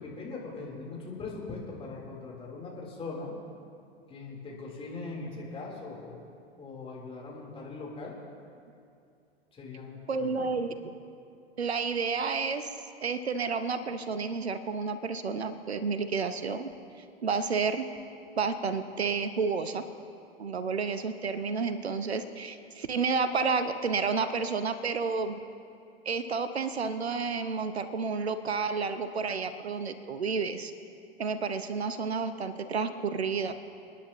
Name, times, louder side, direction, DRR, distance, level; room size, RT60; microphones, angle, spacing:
voice 1, 0.0-3.3 4.1-6.2 6.6-8.1 9.5-10.3, left 3 dB, 20° left, -3 dB, 3.7 m, -40 dB
voice 2, 10.1-11.0 11.6-12.7 13.0-17.9 18.4-19.8 20.4-25.4 26.0-30.7 31.2-33.5, right 5 dB, 80° right, 11 dB, 0.8 m, -31 dB
29.0 x 10.0 x 3.0 m, 2.5 s
figure-of-eight pair, 95°, 31 cm